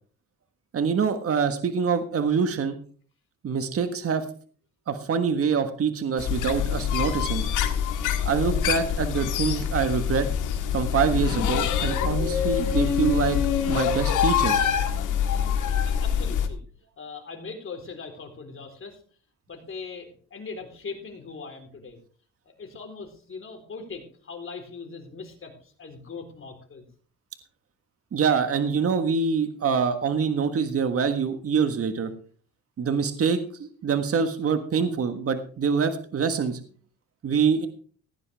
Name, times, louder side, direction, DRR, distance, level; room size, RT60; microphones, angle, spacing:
voice 1, 0.7-2.8 3.4-4.2 4.9-7.4 8.2-10.3 10.7-13.4 13.7-14.7 28.1-32.1 32.8-36.6 37.2-37.7, right 6 dB, 50° right, 8 dB, 1.5 m, -25 dB
sound 1, 6.2-16.5, left 8 dB, 85° left, 1.8 m, -25 dB
voice 2, 15.8-16.6 17.0-19.0 19.5-22.0 22.6-26.9, left 4 dB, 45° left, 4 dB, 3.9 m, -40 dB
16.5 x 9.7 x 3.5 m, 0.43 s
cardioid pair, 90°, 30 cm